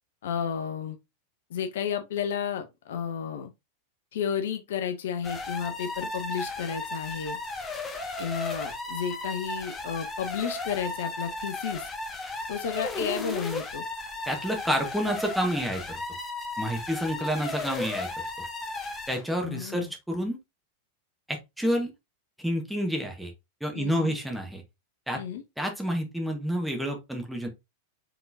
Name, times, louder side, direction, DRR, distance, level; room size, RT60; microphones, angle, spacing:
voice 1, 0.2-1.0 1.5-3.5 4.1-7.4 8.2-11.9 12.5-13.8 19.4-19.9 23.7-24.2 25.1-25.4, left 7 dB, 60° left, 0.6 m, -32 dB
sound 1, 5.2-19.3, left 2 dB, 15° left, 1.1 m, -35 dB
voice 2, 14.3-15.8 16.6-18.1 19.1-20.4 21.3-21.9 22.4-23.3 23.6-24.6 25.1-25.2 25.6-27.5, equal, ahead, 1.3 m, -29 dB
4.8 x 3.6 x 2.6 m
figure-of-eight pair, 90°, 0 cm